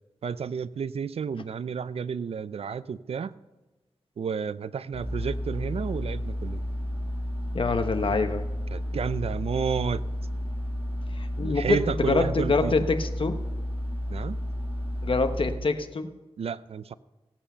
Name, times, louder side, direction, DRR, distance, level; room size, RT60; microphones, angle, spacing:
voice 1, 0.2-3.3 4.2-6.6 8.7-10.0 11.4-12.7 14.1-14.4 16.4-16.9, right 6 dB, 75° right, 16 dB, 0.5 m, -31 dB
sound 1, 4.9-15.6, equal, 15° right, 6.2 m, -32 dB
voice 2, 7.5-8.4 11.2-13.4 15.0-16.1, left 3 dB, 55° left, 8 dB, 1.2 m, -25 dB
17.0 x 8.8 x 5.7 m, 1.1 s
wide cardioid pair, 70°, 10 cm